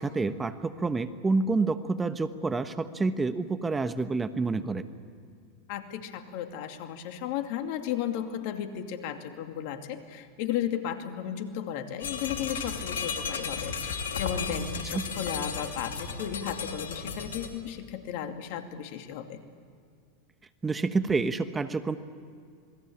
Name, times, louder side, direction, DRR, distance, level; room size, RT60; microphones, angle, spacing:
voice 1, 0.0-4.9 14.9-15.1 20.6-22.0, right 3 dB, 15° right, 10 dB, 1.3 m, -28 dB
voice 2, 5.7-19.4, left 9 dB, 60° left, 6 dB, 2.4 m, -34 dB
sound 1, 12.0-17.5, left 5 dB, 80° left, 3.0 m, -34 dB
28.0 x 20.5 x 8.7 m, 2.2 s
hypercardioid pair, 95°, 0 cm